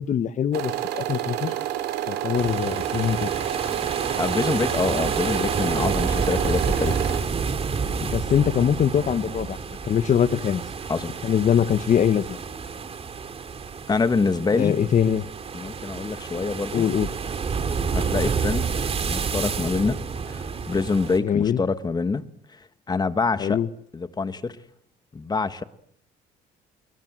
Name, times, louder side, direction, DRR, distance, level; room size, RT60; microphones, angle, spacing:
voice 1, 0.0-1.5 2.1-3.3 6.4-6.5 8.0-9.6 9.8-10.6 11.2-12.4 14.5-15.3 16.7-17.1 21.2-21.6 23.4-23.7, left 8 dB, 45° left, 15 dB, 1.2 m, -23 dB
sound 1, 0.5-7.2, right 12 dB, 80° right, 3.7 m, -29 dB
sound 2, 2.3-21.2, right 5 dB, 35° right, 2.7 m, -29 dB
voice 2, 4.2-7.1 10.9-11.1 13.9-14.8 15.5-16.8 17.9-18.7 19.0-20.0 20.3-22.2 22.9-23.6 23.9-24.6 25.1-25.6, left 4 dB, 25° left, 11 dB, 1.7 m, -25 dB
28.0 x 22.5 x 7.7 m, 0.71 s
cardioid pair, 110°, 17 cm